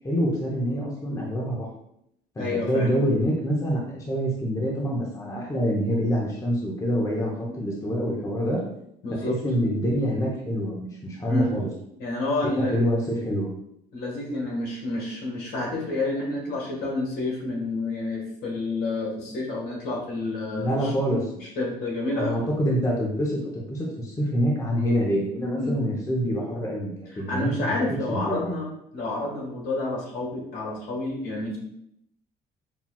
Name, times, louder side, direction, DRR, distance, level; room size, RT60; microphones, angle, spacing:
voice 1, 0.0-1.7 2.4-8.6 9.1-11.7 12.4-13.5 20.5-21.3 22.2-27.7 28.1-28.6, equal, 20° left, -2 dB, 0.7 m, -26 dB
voice 2, 2.4-2.9 9.0-9.4 11.3-11.5 12.0-12.8 13.9-20.9 21.4-22.4 25.5-25.8 27.1-31.6, left 2 dB, 70° left, -3 dB, 1.5 m, -29 dB
5.7 x 2.3 x 2.2 m, 0.75 s
cardioid pair, 110°, 17 cm